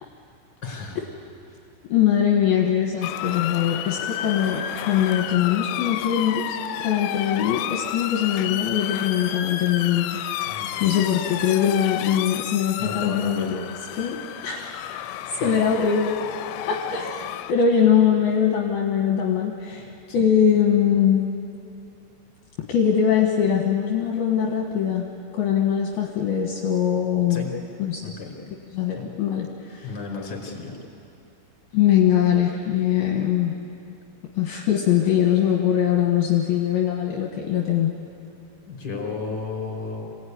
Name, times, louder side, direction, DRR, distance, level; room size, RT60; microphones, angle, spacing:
voice 1, 0.6-1.0 10.4-11.0 12.8-13.6 15.4-15.6 20.1-20.3 27.3-27.5 28.0-28.4 29.0-29.1 29.8-30.8 35.0-35.1 38.7-40.0, left 4 dB, 25° left, 0 dB, 4.7 m, -33 dB
voice 2, 1.9-6.6 6.8-10.1 10.8-13.5 14.0-14.7 15.4-16.2 16.6-21.3 22.6-25.1 25.3-27.5 27.8-28.1 28.7-29.9 31.7-33.6 34.4-37.9, left 9 dB, 65° left, 0 dB, 3.1 m, -22 dB
Motor vehicle (road) / Siren, 3.0-17.5, left 12 dB, 85° left, 3.0 m, -31 dB
27.0 x 18.0 x 9.7 m, 2.6 s
omnidirectional pair, 5.2 m